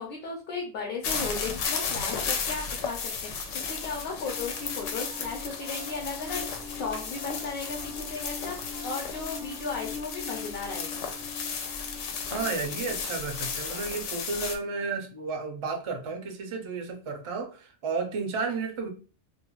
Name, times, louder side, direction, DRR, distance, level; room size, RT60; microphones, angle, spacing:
voice 1, 0.0-11.1, left 4 dB, 60° left, -1 dB, 0.7 m, -36 dB
sound 1, 1.0-14.6, left 5 dB, 90° left, 0.9 m, -34 dB
Piano, 3.5-15.0, left 6 dB, 85° right, 0.9 m, -44 dB
voice 2, 12.3-18.9, right 4 dB, 55° right, 4 dB, 0.3 m, -32 dB
2.4 x 2.3 x 2.9 m, 0.36 s
omnidirectional pair, 1.2 m